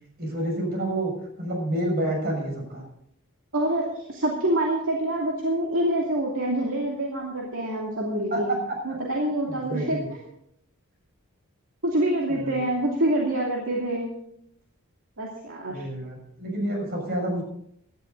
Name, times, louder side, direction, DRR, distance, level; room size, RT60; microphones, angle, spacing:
voice 1, 0.2-1.1 1.4-2.8 8.3-8.4 9.5-10.1 12.3-12.6 15.7-17.4, right 1 dB, 45° right, 1 dB, 6.5 m, -29 dB
voice 2, 3.5-8.5 8.8-10.0 11.8-14.1 15.2-15.8, right 1 dB, 65° right, -2 dB, 2.6 m, -26 dB
17.0 x 12.5 x 4.0 m, 0.71 s
head